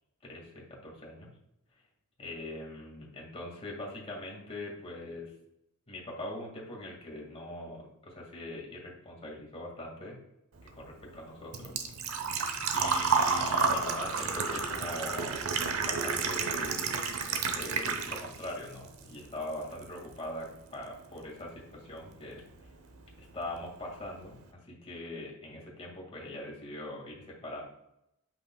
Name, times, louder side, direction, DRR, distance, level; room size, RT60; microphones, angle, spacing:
voice 1, 0.2-1.3 2.2-5.3 5.9-10.2 10.8-11.7 12.7-15.5 15.8-16.9 17.5-22.4 23.2-27.6, left 1 dB, 25° left, -2 dB, 1.8 m, -42 dB
Engine / Trickle dribble / Fill (with liquid), 10.6-18.5 18.8-19.8 20.1-20.2 22.1-22.2 22.4-22.7 23.1-23.2 23.5-23.6, right 5 dB, 70° right, 0.8 m, -30 dB
7.9 x 5.5 x 2.2 m, 0.84 s
head